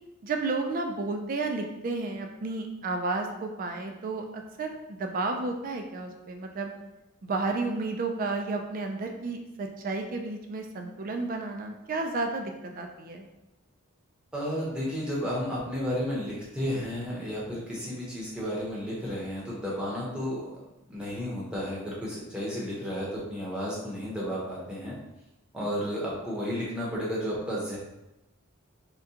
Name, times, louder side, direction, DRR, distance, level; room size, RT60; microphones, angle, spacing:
voice 1, 0.2-6.7 7.2-13.3, right 3 dB, 40° right, 4 dB, 0.3 m, -32 dB
voice 2, 14.3-20.6 20.9-25.0 25.5-27.8, equal, 5° right, -7 dB, 0.7 m, -32 dB
3.6 x 2.2 x 2.7 m, 0.95 s
head